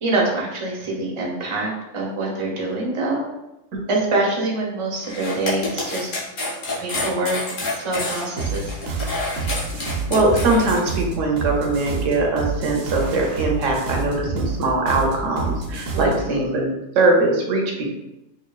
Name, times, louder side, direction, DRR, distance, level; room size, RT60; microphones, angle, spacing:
voice 1, 0.0-3.3 3.9-6.1 6.8-7.4 7.7-8.7 15.9-16.2, right 2 dB, 30° right, -3 dB, 0.7 m, -25 dB
sound 1, 5.0-10.8, left 2 dB, 90° left, 1.4 m, -28 dB
sound 2, 8.4-16.3, right 4 dB, 60° right, 0.8 m, -28 dB
voice 2, 10.1-17.8, right 2 dB, 90° right, 0 dB, 1.1 m, -21 dB
4.8 x 2.6 x 2.3 m, 0.94 s
omnidirectional pair, 1.3 m